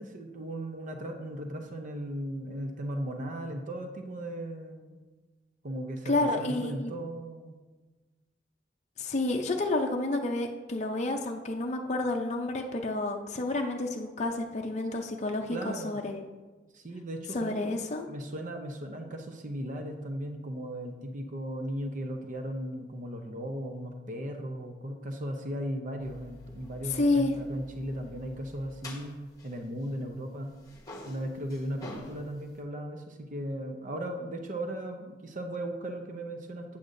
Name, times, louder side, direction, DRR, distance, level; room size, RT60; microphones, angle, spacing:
voice 1, 0.0-5.0 5.6-7.6 15.5-16.0 16.7-17.7 18.1-30.5 31.1-36.8, right 1 dB, 45° right, 5 dB, 0.6 m, -37 dB
voice 2, 6.1-7.0 9.0-16.2 17.3-18.1 26.9-27.3, left 2 dB, 40° left, 2 dB, 0.5 m, -30 dB
sound 1, 26.0-30.2 30.5-32.6, left 2 dB, 20° left, 1.2 m, -48 dB
8.4 x 8.0 x 2.6 m, 1.3 s
head